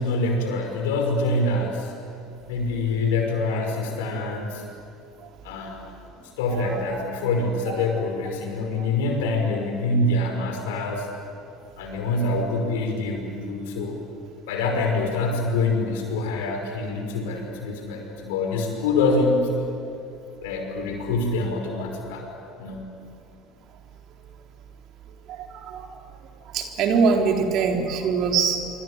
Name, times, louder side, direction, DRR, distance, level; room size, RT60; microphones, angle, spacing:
voice 1, 0.0-1.9 2.5-4.6 5.4-5.8 6.4-11.1 11.8-14.0 14.5-19.5 20.4-22.3 22.6-22.9, left 2 dB, 75° left, 3 dB, 5.5 m, -25 dB
voice 2, 25.3-25.9 26.5-28.7, right 5 dB, 55° right, 3 dB, 3.8 m, -23 dB
26.0 x 25.5 x 9.0 m, 2.7 s
hypercardioid pair, 70°, 0 cm